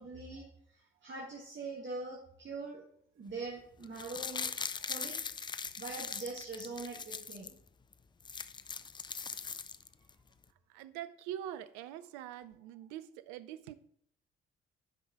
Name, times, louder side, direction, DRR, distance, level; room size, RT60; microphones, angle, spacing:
voice 1, 0.0-2.8 3.2-4.5 4.8-5.2 5.8-7.5, right 3 dB, 35° right, 1.5 m, -43 dB
sound 1, 3.8-7.5 7.9-8.0 8.2-10.1 10.4-10.5, left 5 dB, 15° left, 0.3 m, -40 dB
voice 2, 10.7-13.7, right 11 dB, 65° right, 0.5 m, -44 dB
10.5 x 5.5 x 3.5 m
figure-of-eight pair, 40°, 33 cm